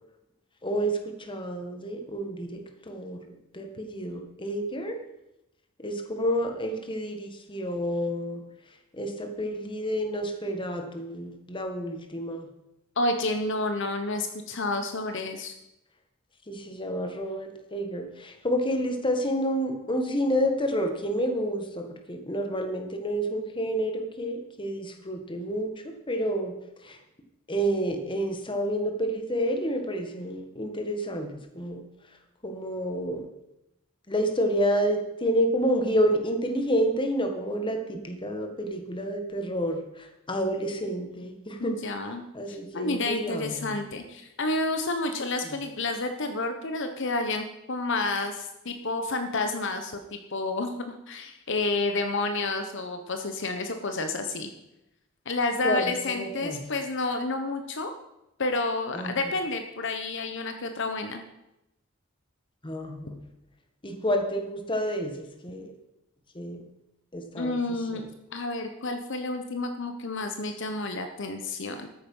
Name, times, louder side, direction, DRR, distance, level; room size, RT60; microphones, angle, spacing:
voice 1, 0.6-5.0 5.8-8.4 8.9-12.4 16.5-26.5 26.8-27.0 27.5-31.8 32.4-33.3 34.1-41.7 42.3-43.7 55.6-56.7 58.9-59.1 62.6-63.2 63.8-65.7 66.3-66.6 67.1-67.6 67.9-68.0, equal, 25° left, 4 dB, 1.6 m, -29 dB
voice 2, 13.0-15.6 41.6-42.2 42.5-54.5 55.3-57.9 58.4-61.2 65.6-65.7 67.4-71.9, left 2 dB, 60° left, 6 dB, 1.0 m, -30 dB
13.5 x 9.3 x 5.5 m, 0.88 s
head